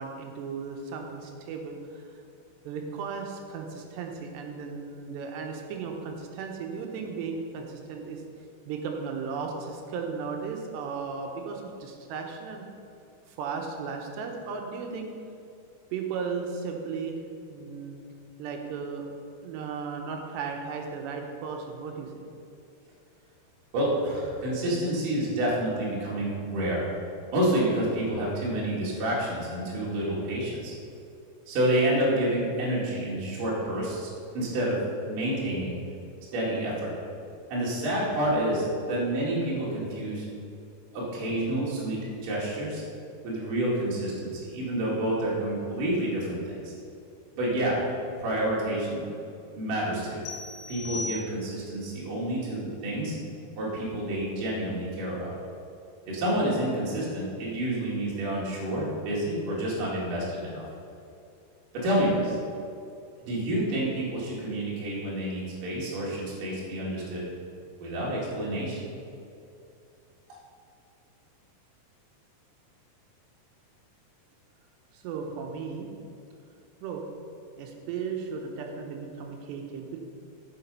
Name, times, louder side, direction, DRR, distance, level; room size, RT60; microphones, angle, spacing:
voice 1, 0.0-2.2 2.6-8.2 8.7-12.7 13.3-15.1 15.9-17.2 17.5-18.0 18.4-19.1 19.4-22.3 74.9-75.9 76.8-77.0 77.6-80.0, right 5 dB, 85° right, 2 dB, 3.1 m, -35 dB
voice 2, 23.7-26.9 27.3-30.7 31.5-34.8 35.0-35.8 36.3-36.9 37.5-40.3 40.9-42.8 43.2-46.7 47.3-47.8 48.2-49.1 49.5-50.3 50.7-53.2 53.6-55.3 56.1-60.6 61.7-62.4 63.2-67.2 67.8-68.9, right 1 dB, 55° right, -6 dB, 3.6 m, -28 dB
sound 1, 50.3-51.8, left 3 dB, 90° left, 3.3 m, -38 dB
10.0 x 7.0 x 5.5 m, 2.6 s
omnidirectional pair, 4.9 m